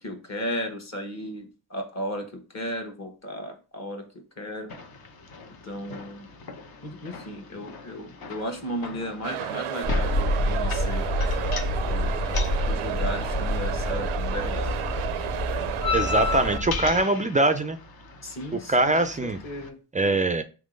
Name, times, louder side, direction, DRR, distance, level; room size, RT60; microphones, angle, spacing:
voice 1, 0.0-4.1 4.4-4.7 5.6-6.3 6.8-11.0 11.8-12.1 12.7-14.8 18.2-18.9 19.2-19.8, equal, 30° left, 3 dB, 1.2 m, -35 dB
sound 1, 4.7-19.7, left 6 dB, 45° left, 0.8 m, -37 dB
sound 2, 9.2-16.6, right 12 dB, 85° right, 0.5 m, -32 dB
sound 3, 9.8-17.0, left 1 dB, 75° left, 2.2 m, -28 dB
voice 2, 15.9-17.8 18.5-19.4 19.9-20.4, right 2 dB, 20° right, 10 dB, 0.3 m, -23 dB
3.7 x 3.0 x 3.8 m, 0.34 s
cardioid pair, 75°, 49 cm